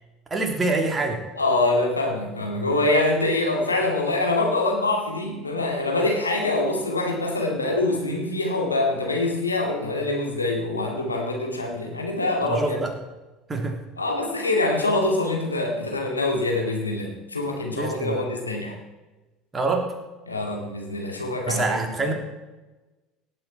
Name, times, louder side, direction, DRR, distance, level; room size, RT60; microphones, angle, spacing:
voice 1, 0.3-1.2 12.4-12.9 13.5-13.8 17.7-18.2 19.5-19.9 21.5-22.1, right 3 dB, 25° right, 3 dB, 2.7 m, -25 dB
voice 2, 1.4-12.8 14.0-18.8 20.3-22.1, left 2 dB, 90° left, 1 dB, 2.2 m, -25 dB
18.0 x 8.6 x 4.4 m, 1.1 s
figure-of-eight pair, 65°, 0 cm